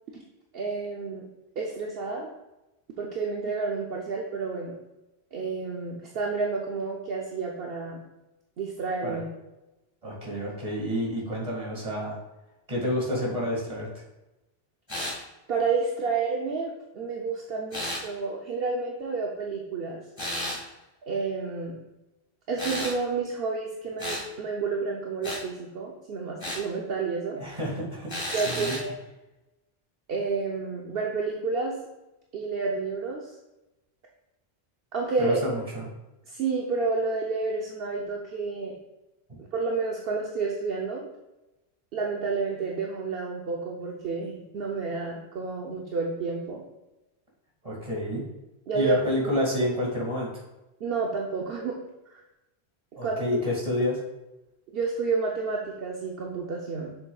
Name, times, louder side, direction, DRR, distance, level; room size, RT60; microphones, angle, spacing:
voice 1, 0.5-1.2 1.6-2.3 3.0-4.8 5.3-8.0 8.6-9.2 15.5-20.0 21.1-21.8 22.5-27.4 28.3-28.9 30.1-31.8 32.3-33.4 34.9-35.4 36.3-38.7 39.4-41.1 41.9-46.6 48.7-49.0 50.8-51.8 52.1-52.2 53.0-53.2 54.7-56.9, right 4 dB, 65° right, -1 dB, 0.9 m, -30 dB
voice 2, 10.0-12.2 12.7-13.9 27.4-28.8 35.2-35.8 47.6-48.2 48.7-50.3 53.0-54.0, equal, 35° right, -3 dB, 2.1 m, -29 dB
sound 1, 14.9-15.2 17.7-18.0 20.2-20.6 22.6-23.0 24.0-24.3 25.2-25.4 26.4-26.6 28.1-28.8, left 1 dB, 25° left, 1.6 m, -32 dB
7.0 x 6.9 x 2.3 m, 0.98 s
omnidirectional pair, 1.1 m